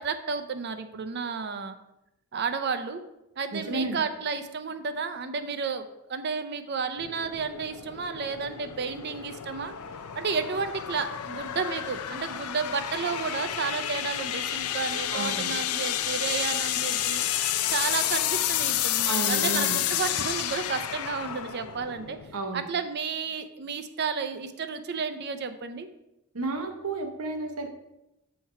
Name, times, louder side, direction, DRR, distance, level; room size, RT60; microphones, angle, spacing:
voice 1, 0.0-1.8 2.3-3.0 3.4-9.7 10.2-17.2 17.7-22.2 22.5-25.9, right 5 dB, 50° right, 10 dB, 0.5 m, -32 dB
voice 2, 3.5-4.0 15.1-15.5 19.0-19.8 22.3-22.6 26.3-27.7, right 2 dB, 80° right, 5 dB, 1.0 m, -32 dB
sound 1, 7.0-22.4, left 11 dB, 80° left, 0.4 m, -30 dB
6.5 x 4.4 x 5.6 m, 0.90 s
head